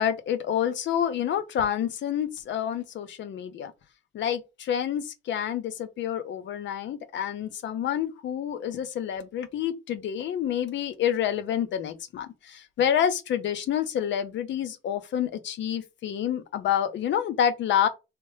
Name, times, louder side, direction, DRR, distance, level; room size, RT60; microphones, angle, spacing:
voice 1, 0.0-3.7 4.1-17.9, left 9 dB, 65° left, 0.6 m, -28 dB
3.2 x 2.8 x 3.2 m
cardioid pair, 90°, 20 cm